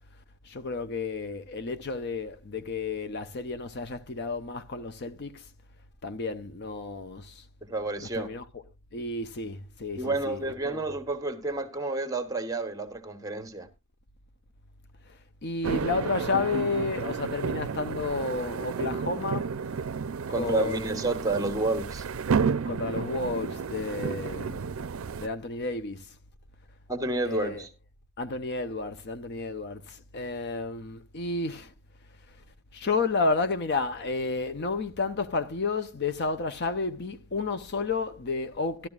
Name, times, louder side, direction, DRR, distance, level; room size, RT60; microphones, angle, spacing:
voice 1, 0.5-5.4 6.0-7.4 8.0-8.6 8.9-10.8 15.4-19.5 20.3-21.1 22.7-24.6 25.2-26.0 27.2-27.7 28.2-31.7 32.7-38.9, left 3 dB, 50° left, 0.6 m, -31 dB
voice 2, 7.6-8.3 10.0-13.7 20.3-22.1 26.9-27.7, right 2 dB, 15° right, 1.2 m, -30 dB
sound 1, 15.6-25.3, right 5 dB, 70° right, 0.5 m, -31 dB
13.0 x 12.0 x 2.4 m
head